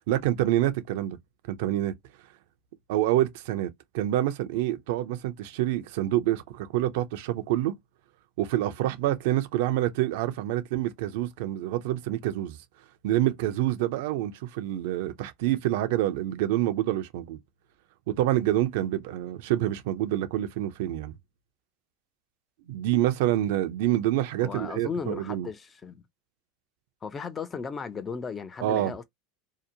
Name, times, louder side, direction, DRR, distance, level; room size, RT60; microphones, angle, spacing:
voice 1, 0.1-1.2 1.5-1.9 2.9-3.7 3.9-7.8 8.4-12.6 13.0-17.4 18.1-21.1 22.7-25.5 28.6-29.0, right 14 dB, 70° right, 0.4 m, -27 dB
voice 2, 24.4-26.0 27.0-29.0, left 5 dB, 25° left, 0.4 m, -35 dB
2.8 x 2.1 x 2.5 m
hypercardioid pair, 100°, 0 cm